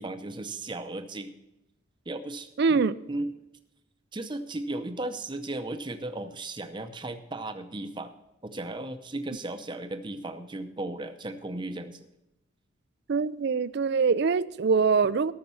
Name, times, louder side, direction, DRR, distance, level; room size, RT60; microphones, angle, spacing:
voice 1, 0.0-1.3 2.1-3.3 4.1-8.2 8.4-12.1, right 2 dB, 20° right, 0.7 m, -35 dB
voice 2, 2.6-2.9 13.1-15.3, right 5 dB, 50° right, 0.4 m, -23 dB
13.5 x 6.6 x 7.0 m
head